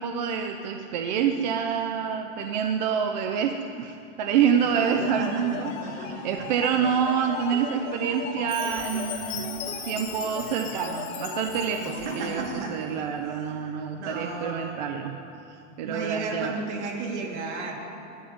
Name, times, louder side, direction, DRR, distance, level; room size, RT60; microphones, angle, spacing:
voice 1, 0.0-15.2 15.8-16.5, right 7 dB, 35° right, 5 dB, 0.6 m, -27 dB
sound 1, 4.8-12.5, left 5 dB, 65° left, 2.9 m, -38 dB
voice 2, 5.0-6.5 11.8-12.8 13.3-14.6 15.8-17.7, right 3 dB, 60° right, 0 dB, 3.0 m, -34 dB
Chime, 8.5-12.6, left 9 dB, 35° left, 2.1 m, -39 dB
12.5 x 10.0 x 9.4 m, 2.8 s
supercardioid pair, 175°, 39 cm